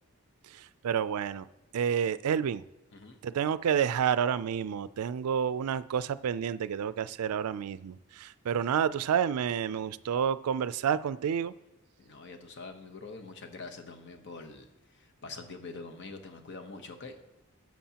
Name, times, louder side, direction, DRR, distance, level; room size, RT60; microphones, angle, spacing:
voice 1, 0.8-1.5 1.7-2.6 3.2-11.5, right 8 dB, 80° right, 16 dB, 0.3 m, -29 dB
voice 2, 12.0-17.2, left 3 dB, 50° left, 5 dB, 0.9 m, -45 dB
13.0 x 7.4 x 2.9 m, 0.96 s
head